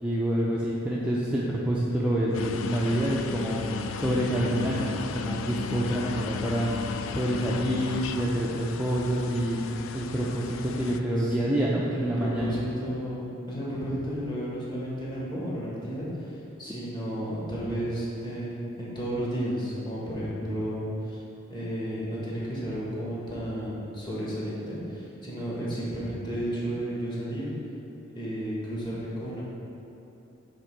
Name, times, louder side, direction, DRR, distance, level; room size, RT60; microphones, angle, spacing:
voice 1, 0.0-3.6 3.9-6.7 7.1-12.5, right 1 dB, 5° right, -6 dB, 0.4 m, -27 dB
sound 1, 2.3-11.0, left 6 dB, 75° left, 0.3 m, -35 dB
voice 2, 11.2-21.2 21.5-27.5 28.1-29.4, equal, 25° left, -7 dB, 1.5 m, -33 dB
7.5 x 3.6 x 4.5 m, 2.8 s
head